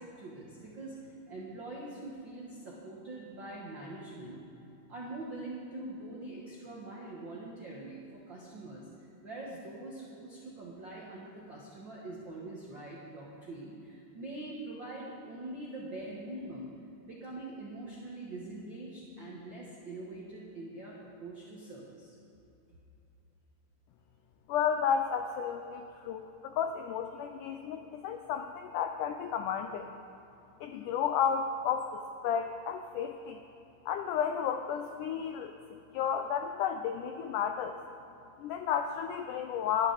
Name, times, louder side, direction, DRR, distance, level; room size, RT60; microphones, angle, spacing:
voice 1, 0.0-4.4 4.9-8.9 9.2-16.7 17.0-22.1, right 2 dB, 70° right, -4 dB, 1.1 m, -44 dB
voice 2, 24.5-29.9 30.6-33.4 33.8-35.5 35.9-37.8 38.4-39.9, left 8 dB, 85° left, 7 dB, 1.8 m, -32 dB
19.0 x 10.5 x 4.0 m, 2.9 s
omnidirectional pair, 4.2 m